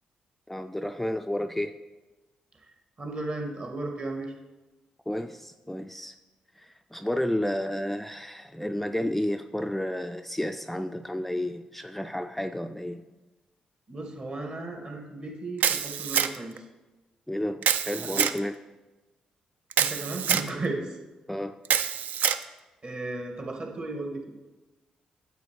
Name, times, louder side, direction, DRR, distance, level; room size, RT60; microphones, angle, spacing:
voice 1, 0.5-1.8 5.1-6.1 6.6-13.0 17.3-18.6 21.3-21.6, left 1 dB, 5° left, 7 dB, 0.3 m, -31 dB
voice 2, 3.0-4.3 13.9-16.6 18.0-18.2 19.8-20.9 22.8-24.2, right 2 dB, 45° right, 1 dB, 1.8 m, -35 dB
Camera, 15.6-16.6 17.6-18.4 19.7-20.5 21.7-22.4, right 8 dB, 65° right, 0.4 m, -25 dB
9.2 x 7.4 x 3.1 m, 1.1 s
hypercardioid pair, 40°, 3 cm